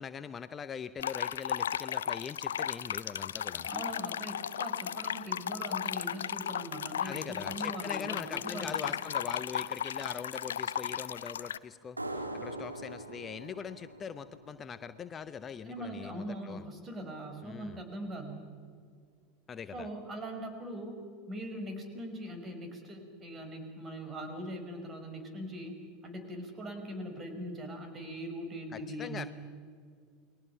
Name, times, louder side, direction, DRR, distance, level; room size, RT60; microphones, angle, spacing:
voice 1, 0.0-3.7 7.0-16.6 17.4-17.8 19.5-19.9 28.7-29.3, left 7 dB, 30° left, 12 dB, 0.8 m, -42 dB
sound 1, 1.0-11.6, left 9 dB, 70° left, 0.5 m, -35 dB
voice 2, 3.7-8.7 15.6-18.5 19.7-25.8 26.0-29.3, right 1 dB, 30° right, 6 dB, 5.1 m, -41 dB
sound 2, 12.0-15.3, right 1 dB, 90° right, 1.7 m, -42 dB
29.5 x 21.5 x 5.8 m, 2.1 s
figure-of-eight pair, 80°, 0 cm